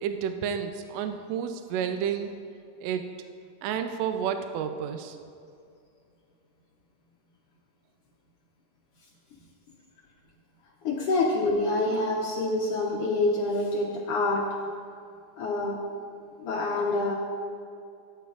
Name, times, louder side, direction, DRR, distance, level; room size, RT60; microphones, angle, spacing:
voice 1, 0.0-2.3 2.8-3.1 3.6-5.2, right 8 dB, 75° right, 7 dB, 1.6 m, -30 dB
voice 2, 10.8-14.6 15.4-15.8 16.4-17.1, left 2 dB, 65° left, -2 dB, 1.5 m, -26 dB
18.0 x 9.1 x 2.5 m, 2.5 s
omnidirectional pair, 3.5 m